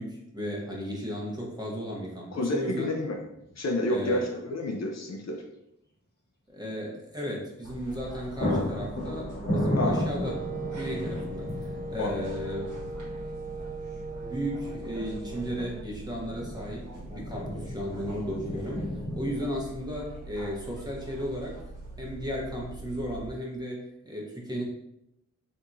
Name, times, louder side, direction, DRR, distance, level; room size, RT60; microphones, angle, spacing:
voice 1, 0.0-2.9 3.9-4.3 6.5-10.4 10.6-12.7 14.3-16.8 17.1-18.9 19.1-21.6 22.0-24.6, equal, 15° right, -3 dB, 1.0 m, -35 dB
voice 2, 2.3-3.2 3.6-5.4 9.8-10.1 12.0-12.2, left 1 dB, 55° left, 2 dB, 0.5 m, -29 dB
sound 1, 3.2-3.5 3.8-3.9 7.6-7.8 8.1-19.5, equal, 30° left, 1.1 m, -34 dB
sound 2, 7.6-23.3, right 2 dB, 70° right, 1.4 m, -43 dB
Wind instrument woodwind instrument, 10.2-15.9, right 2 dB, 30° right, 0.4 m, -39 dB
3.4 x 2.8 x 2.6 m, 0.82 s
wide cardioid pair, 60°, 32 cm